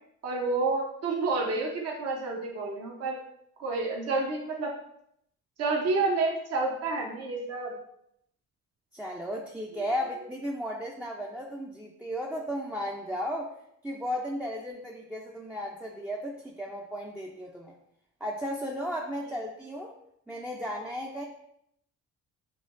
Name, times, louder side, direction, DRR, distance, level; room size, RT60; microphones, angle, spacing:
voice 1, 0.2-3.2 3.6-4.7 5.6-7.7 9.7-9.8, right 3 dB, 55° right, -1 dB, 1.0 m, -29 dB
voice 2, 8.9-13.5 13.8-17.7 18.2-19.9 20.3-21.3, equal, 5° right, -2 dB, 0.5 m, -35 dB
6.5 x 2.8 x 2.6 m, 0.74 s
cardioid pair, 90°, 30 cm